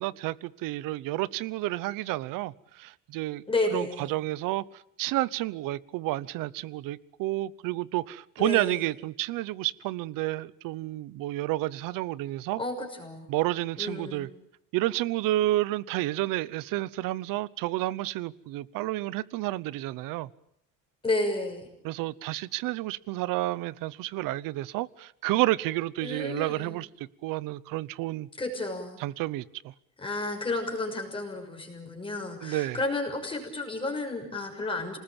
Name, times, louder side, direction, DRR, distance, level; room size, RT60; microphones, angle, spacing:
voice 1, 0.0-3.4 3.7-12.6 13.3-14.3 14.7-20.3 21.8-28.3 29.0-29.7 32.4-32.8, right 17 dB, 70° right, 1.0 m, -30 dB
voice 2, 3.5-4.1 8.4-8.8 12.6-13.3 13.8-14.3 21.0-21.7 26.0-26.7 28.4-29.0 30.0-35.0, left 2 dB, 15° left, 6.2 m, -31 dB
27.5 x 20.0 x 9.0 m
cardioid pair, 150°, 34 cm